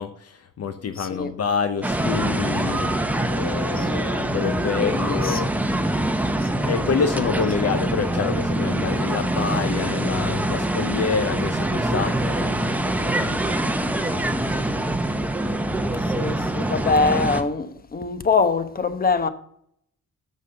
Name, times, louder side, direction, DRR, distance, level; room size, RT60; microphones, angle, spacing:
voice 1, 0.0-5.5 6.6-14.7, left 6 dB, 55° left, 0.8 m, -28 dB
voice 2, 1.0-1.3 3.8-4.1 4.8-5.4 6.4-6.8 15.9-19.3, left 4 dB, 30° left, 1.0 m, -24 dB
sound 1, 1.8-17.4, right 1 dB, 5° right, 0.9 m, -24 dB
7.3 x 6.5 x 6.4 m
cardioid pair, 90°, 30 cm